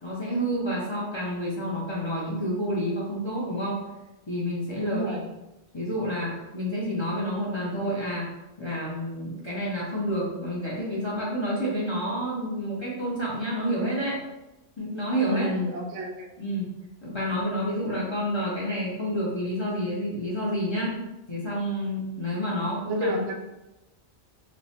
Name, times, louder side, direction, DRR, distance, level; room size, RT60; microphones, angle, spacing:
voice 1, 0.0-3.8 4.3-5.2 5.7-8.3 8.6-14.2 14.8-15.5 16.4-16.7 17.0-21.0 21.3-23.2, equal, 25° left, -7 dB, 0.7 m, -29 dB
voice 2, 4.8-5.2 15.3-16.3 22.9-23.3, equal, 80° right, 1 dB, 1.0 m, -29 dB
3.2 x 2.1 x 4.2 m, 0.97 s
omnidirectional pair, 1.2 m